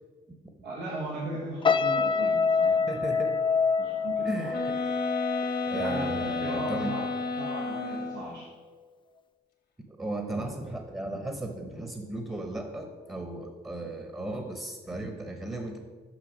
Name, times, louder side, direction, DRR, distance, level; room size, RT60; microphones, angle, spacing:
voice 1, 0.6-2.9 3.8-4.5 5.7-7.1 7.4-8.5, right 2 dB, 85° right, -4 dB, 1.2 m, -37 dB
sound 1, 1.6-6.9 7.3-7.6, left 5 dB, 30° left, 0.4 m, -27 dB
voice 2, 2.9-3.4 4.2-4.7 5.7-7.0 9.9-15.8, right 1 dB, 15° right, 4 dB, 0.9 m, -35 dB
sound 2, 4.5-8.4, left 3 dB, 70° left, 1.2 m, -32 dB
6.1 x 5.6 x 5.2 m, 1.5 s
cardioid pair, 70°, 18 cm